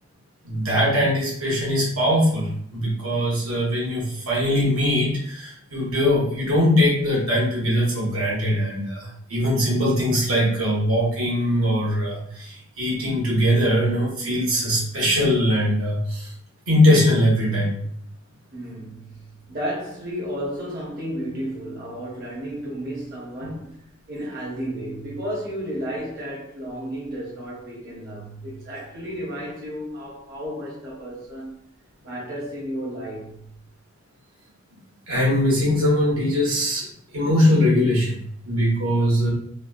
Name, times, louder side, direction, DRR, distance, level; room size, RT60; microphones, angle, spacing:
voice 1, 0.4-16.3 16.7-17.8 35.1-36.9 37.1-39.3, left 1 dB, 85° right, 1.3 m, -21 dB
voice 2, 18.5-31.5 32.0-33.5, equal, 50° right, 0.9 m, -33 dB
3.3 x 2.4 x 2.4 m
head